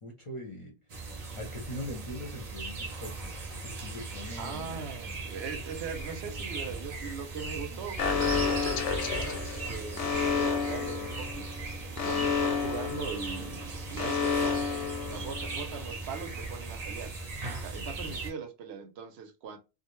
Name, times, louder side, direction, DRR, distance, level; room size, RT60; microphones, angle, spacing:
voice 1, 0.0-0.7 1.1-4.8 12.0-12.3 17.8-18.2, left 1 dB, 35° left, 0.5 m, -42 dB
sound 1, 0.9-18.3, right 3 dB, 45° right, 0.6 m, -38 dB
voice 2, 4.4-11.5 12.0-14.6 15.1-17.1 17.6-19.6, right 6 dB, 70° right, 0.8 m, -40 dB
Alarm, 8.0-15.7, left 5 dB, 90° left, 0.9 m, -31 dB
2.4 x 2.1 x 3.0 m
omnidirectional pair, 1.1 m